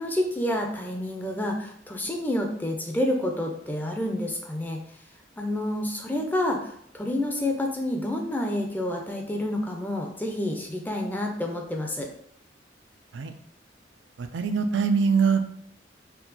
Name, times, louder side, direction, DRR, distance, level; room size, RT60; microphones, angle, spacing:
voice 1, 0.0-4.8 5.4-12.1, left 1 dB, 10° left, 1 dB, 0.4 m, -29 dB
voice 2, 14.2-15.5, right 5 dB, 85° right, 7 dB, 0.4 m, -23 dB
4.3 x 2.3 x 4.0 m, 0.68 s
head